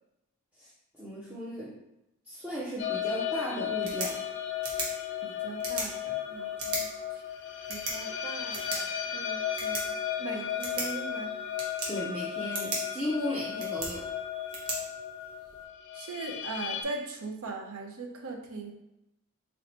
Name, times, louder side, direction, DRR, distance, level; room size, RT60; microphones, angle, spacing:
voice 1, 0.5-1.8 2.2-4.2 11.9-14.1, equal, 5° right, -7 dB, 0.6 m, -35 dB
sound 1, 2.8-16.8, left 9 dB, 55° left, 0.5 m, -35 dB
sound 2, 3.6-15.6, right 2 dB, 90° right, 1.1 m, -40 dB
voice 2, 5.2-7.2 7.7-9.8 10.2-11.3 15.9-18.7, right 3 dB, 75° right, 3 dB, 0.6 m, -40 dB
3.1 x 2.8 x 4.2 m, 0.88 s
head